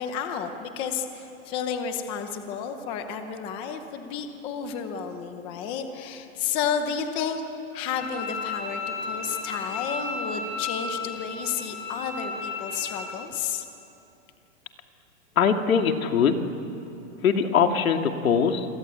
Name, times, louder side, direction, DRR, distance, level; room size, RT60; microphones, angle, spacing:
voice 1, 0.0-7.4 7.7-13.6, left 7 dB, 15° left, 7 dB, 0.8 m, -31 dB
Bowed string instrument, 8.0-13.0, left 4 dB, 35° left, 7.1 m, -33 dB
voice 2, 15.4-16.4 17.2-18.7, left 6 dB, 85° left, 5 dB, 2.6 m, -22 dB
28.5 x 23.0 x 9.1 m, 2.8 s
supercardioid pair, 180°, 40 cm